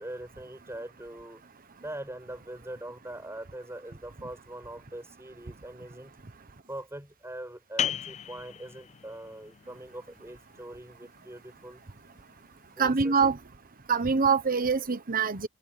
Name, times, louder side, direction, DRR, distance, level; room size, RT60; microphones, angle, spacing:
voice 1, 0.0-1.4 1.8-6.1 6.7-11.8 12.8-13.2, right 1 dB, 10° right, 6.5 m, -42 dB
sound 1, 7.8-13.1, left 10 dB, 30° left, 0.5 m, -38 dB
voice 2, 12.8-13.4 13.9-15.5, right 5 dB, 40° right, 1.1 m, -24 dB
head